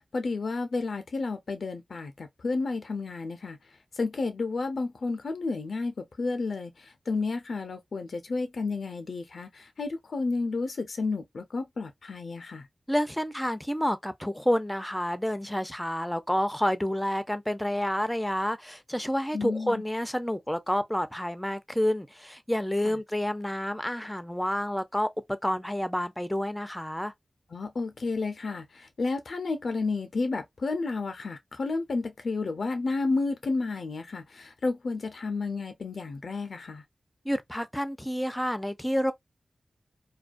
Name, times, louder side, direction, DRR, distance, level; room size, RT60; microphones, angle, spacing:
voice 1, 0.1-3.6 4.0-12.7 19.3-19.8 22.8-23.0 27.5-36.8, left 3 dB, 75° left, 0.4 m, -31 dB
voice 2, 12.9-27.1 37.3-39.1, equal, 5° left, 0.4 m, -29 dB
2.3 x 2.1 x 2.4 m
cardioid pair, 55°, 0 cm